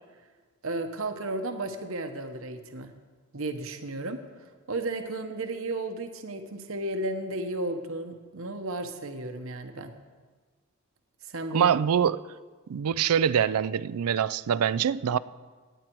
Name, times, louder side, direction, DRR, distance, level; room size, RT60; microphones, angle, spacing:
voice 1, 0.6-2.9 3.3-9.9 11.2-11.7, right 2 dB, 65° right, 1.0 m, -34 dB
voice 2, 11.5-12.2 12.7-15.2, right 8 dB, 85° right, 0.4 m, -24 dB
18.5 x 9.0 x 4.6 m
head